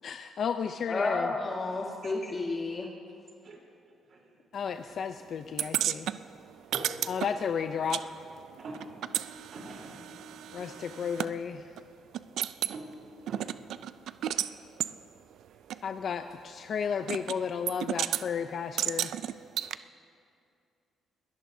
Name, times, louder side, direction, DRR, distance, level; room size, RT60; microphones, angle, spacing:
voice 1, 0.0-1.3 4.5-6.1 7.1-8.0 10.5-11.7 15.8-19.1, left 7 dB, 60° left, 7 dB, 0.5 m, -33 dB
voice 2, 0.9-2.9, left 3 dB, 30° left, 0 dB, 1.3 m, -31 dB
sound 1, 5.6-8.1 8.3-11.3 11.8-11.9 12.1-12.8 13.3-14.5 14.8-14.9 15.7-15.8 17.1-17.4 17.7-18.2 18.8-19.8, right 11 dB, 75° right, 0.3 m, -33 dB
voice 3, 9.5-10.8 12.7-12.9 13.3-13.5 14.3-14.5, right 2 dB, 60° right, -1 dB, 3.7 m, -44 dB
22.0 x 17.5 x 2.7 m, 2.4 s
cardioid pair, 90°, 0 cm